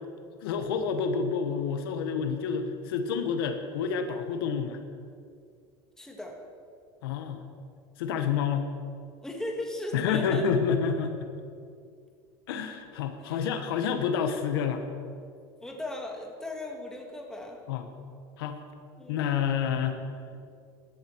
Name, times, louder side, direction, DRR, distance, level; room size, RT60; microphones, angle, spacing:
voice 1, 0.4-4.8 7.0-7.4 8.0-8.7 9.9-11.3 12.5-14.8 17.7-17.9 18.4-18.6 19.1-20.0 20.3-20.4, left 6 dB, 90° left, 7 dB, 1.2 m, -28 dB
voice 2, 6.0-6.4 9.2-10.5 13.2-13.4 15.6-17.6 19.0-19.3, left 1 dB, 5° left, 1 dB, 1.9 m, -37 dB
14.5 x 12.0 x 4.6 m, 2.3 s
supercardioid pair, 120°, 12 cm